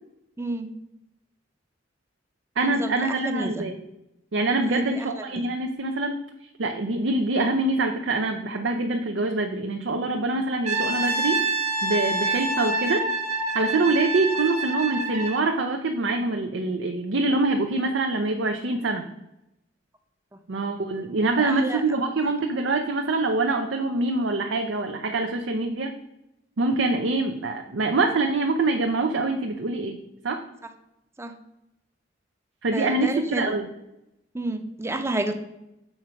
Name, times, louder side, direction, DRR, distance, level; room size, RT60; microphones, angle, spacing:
voice 1, 0.4-0.7 2.6-3.6 4.6-5.2 21.2-21.8 31.2-31.3 32.7-33.5 34.3-35.3, right 2 dB, 15° right, 7 dB, 0.6 m, -30 dB
voice 2, 2.6-3.8 4.3-6.1 6.6-11.5 11.8-13.1 13.5-19.1 20.5-25.9 26.6-30.0 30.2-30.4 32.6-33.7, right 2 dB, 80° right, 3 dB, 0.6 m, -25 dB
Brass instrument, 10.6-15.5, right 3 dB, 40° right, 1.3 m, -27 dB
7.3 x 4.5 x 5.1 m, 0.89 s
head